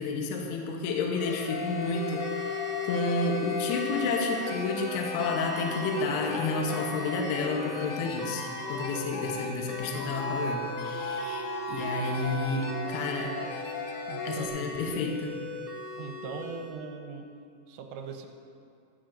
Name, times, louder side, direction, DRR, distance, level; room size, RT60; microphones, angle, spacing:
voice 1, 0.0-13.4 14.3-15.4, left 3 dB, 75° left, 1 dB, 2.9 m, -31 dB
Serbian accordion Improvisation, 1.2-14.5, left 5 dB, 90° left, 3.3 m, -36 dB
sound 1, 1.2-16.7, equal, 55° right, 0.7 m, -40 dB
voice 2, 14.1-14.5 16.0-17.3 17.7-18.3, right 5 dB, 80° right, 4 dB, 3.0 m, -40 dB
14.0 x 13.5 x 2.6 m, 2.4 s
omnidirectional pair, 5.3 m